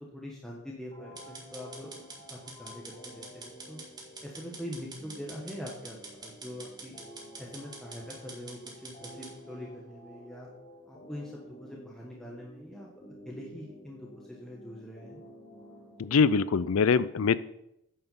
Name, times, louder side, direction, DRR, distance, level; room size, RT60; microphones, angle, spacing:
voice 1, 0.1-3.8 4.2-7.0 7.4-10.5 10.9-12.9 13.2-15.2, equal, ahead, -4 dB, 1.3 m, -43 dB
sound 1, 0.9-16.9, equal, 30° left, 4.3 m, -51 dB
sound 2, 1.2-9.3, right 3 dB, 20° right, 1.9 m, -46 dB
voice 2, 16.0-17.4, left 5 dB, 80° left, 17 dB, 0.4 m, -23 dB
9.4 x 5.7 x 7.1 m, 0.80 s
head